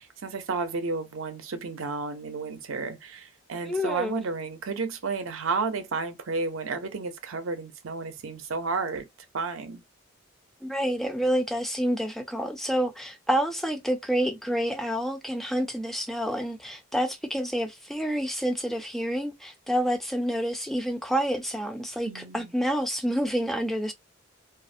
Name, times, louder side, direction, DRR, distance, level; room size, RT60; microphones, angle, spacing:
voice 1, 0.0-9.1 9.3-9.8 22.1-22.5, right 4 dB, 75° right, 0.5 m, -32 dB
voice 2, 3.6-4.2 10.6-23.9, equal, ahead, 0.4 m, -28 dB
2.4 x 2.0 x 2.5 m
head